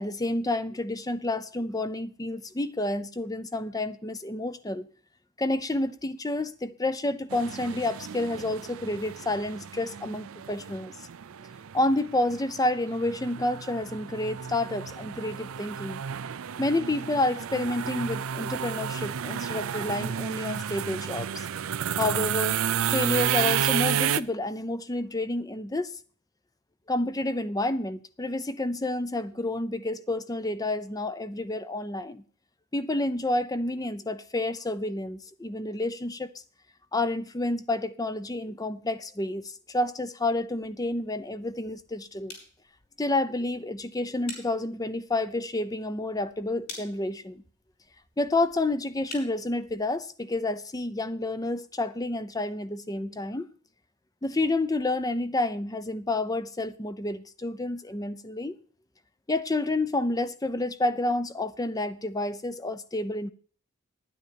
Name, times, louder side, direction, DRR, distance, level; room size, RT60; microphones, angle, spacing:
voice 1, 0.0-4.9 5.4-10.9 11.7-16.0 16.6-21.5 22.0-22.6 22.9-25.9 26.9-32.2 32.7-36.3 36.9-42.3 43.0-47.4 48.2-53.5 54.2-58.6 59.3-63.3, left 2 dB, 15° left, 0.6 m, -29 dB
sound 1, 7.3-24.2, right 9 dB, 70° right, 0.5 m, -31 dB
sound 2, 40.2-50.0, left 2 dB, 45° left, 6.4 m, -50 dB
10.0 x 9.4 x 6.9 m
head